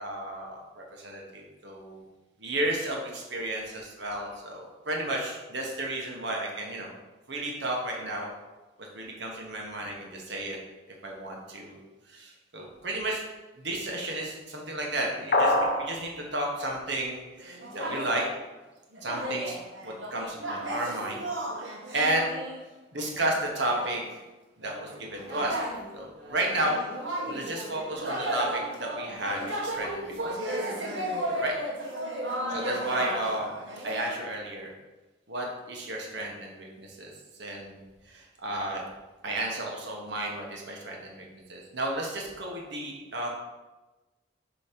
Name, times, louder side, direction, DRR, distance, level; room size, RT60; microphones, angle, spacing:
voice 1, 0.0-2.0 2.4-6.9 7.3-8.3 8.9-10.6 11.0-11.8 12.1-13.2 13.6-18.2 19.0-19.5 19.8-21.2 21.9-22.3 22.9-24.0 24.6-25.6 25.9-26.8 27.3-30.3 31.3-31.5 32.5-33.6 33.8-34.7 35.3-37.1 37.4-37.8 38.1-38.9 39.2-43.3, right 1 dB, 65° right, -1 dB, 1.2 m, -32 dB
sound 1, 15.3-15.9, left 1 dB, 50° left, 0.8 m, -22 dB
sound 2, 17.4-18.3 18.9-22.6 23.1-23.4 23.7-24.1 24.6-34.2, right 1 dB, 80° right, 1.4 m, -34 dB
7.0 x 3.1 x 5.2 m, 1.1 s
head